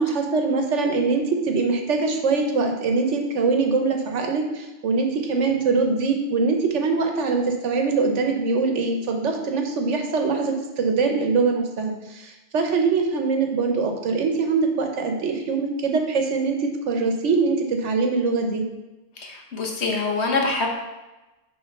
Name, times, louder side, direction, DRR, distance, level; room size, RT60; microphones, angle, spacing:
voice 1, 0.0-18.6, right 4 dB, 75° right, 3 dB, 1.2 m, -23 dB
voice 2, 19.2-20.7, left 3 dB, 65° left, 1 dB, 1.2 m, -25 dB
6.3 x 3.4 x 5.2 m, 1.1 s
omnidirectional pair, 1.3 m